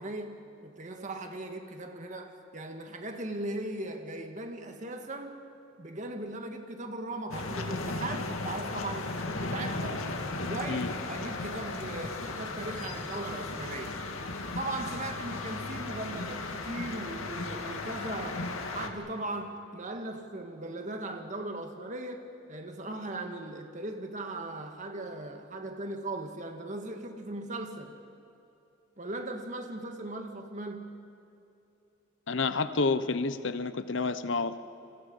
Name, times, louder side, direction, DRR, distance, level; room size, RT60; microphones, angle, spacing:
voice 1, 0.0-5.4 5.8-10.0 10.5-14.0 14.6-28.0 29.0-31.1, right 2 dB, 35° right, 5 dB, 1.9 m, -38 dB
sound 1, 7.3-18.9, left 2 dB, 85° left, 2.2 m, -36 dB
voice 2, 32.3-34.6, left 4 dB, 60° left, 13 dB, 0.9 m, -29 dB
29.5 x 26.0 x 5.5 m, 2.8 s
head